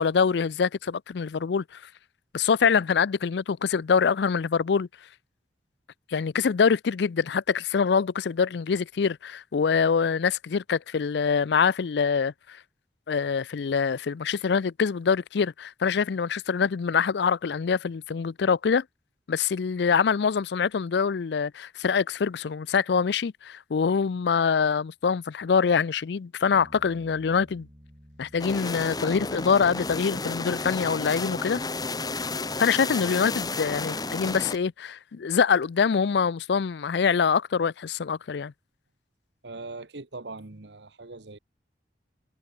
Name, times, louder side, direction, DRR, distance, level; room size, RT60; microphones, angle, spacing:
voice 1, 0.0-1.8 2.3-4.9 6.1-12.6 13.1-18.8 19.3-27.7 28.2-31.6 32.6-38.5, left 6 dB, 65° left, 0.4 m, -25 dB
Bass guitar, 26.5-32.8, equal, 25° right, 6.5 m, -54 dB
sound 1, 28.4-34.6, left 3 dB, 20° left, 1.5 m, -32 dB
voice 2, 39.4-41.4, right 3 dB, 70° right, 1.3 m, -40 dB
head